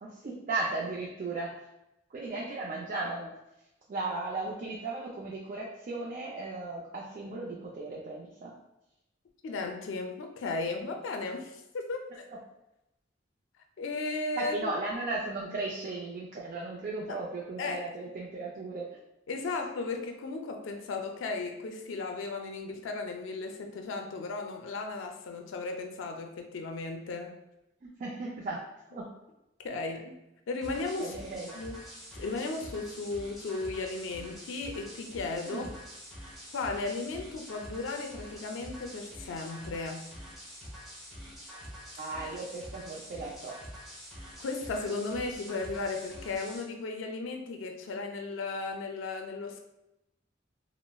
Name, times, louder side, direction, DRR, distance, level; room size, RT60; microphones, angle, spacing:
voice 1, 0.0-1.5 2.1-3.3 3.9-8.5 12.3-12.4 14.4-18.9 27.8-28.6 28.9-29.1 31.0-31.6 35.4-35.7 42.0-43.6, right 3 dB, 45° right, -3 dB, 0.4 m, -36 dB
voice 2, 9.4-12.3 13.8-14.5 17.1-17.2 17.6-17.8 19.3-27.4 29.6-30.1 30.5-31.1 31.6-31.8 32.2-35.6 36.5-40.1 44.4-49.6, left 3 dB, 85° left, 4 dB, 0.4 m, -35 dB
sound 1, 30.6-46.6, equal, ahead, 1.0 m, -46 dB
4.0 x 2.0 x 2.2 m, 0.90 s
head